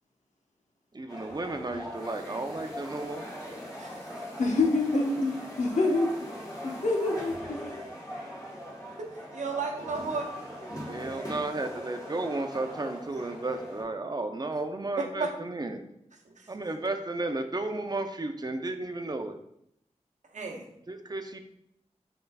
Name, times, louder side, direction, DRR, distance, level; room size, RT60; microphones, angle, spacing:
voice 1, 0.9-3.3 10.8-15.8 16.5-19.4 20.9-21.4, right 2 dB, 35° right, 6 dB, 0.5 m, -33 dB
sound 1, 1.1-13.8, equal, 30° left, 1.4 m, -41 dB
voice 2, 4.4-6.1 6.6-7.6, left 2 dB, 75° left, 1 dB, 0.9 m, -26 dB
voice 3, 9.3-10.3 15.0-15.3 16.2-16.5 20.3-20.7, right 4 dB, 80° right, 1 dB, 0.8 m, -33 dB
5.4 x 3.8 x 2.3 m, 0.75 s
wide cardioid pair, 65°, 12 cm